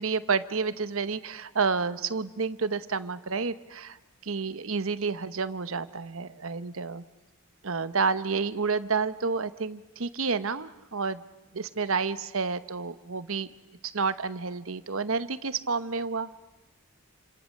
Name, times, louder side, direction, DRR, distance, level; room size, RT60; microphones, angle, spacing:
voice 1, 0.0-4.0 4.2-7.0 7.6-11.2 11.5-13.5 13.8-16.3, right 4 dB, 70° right, 13 dB, 1.0 m, -30 dB
28.5 x 27.0 x 6.6 m, 1.1 s
head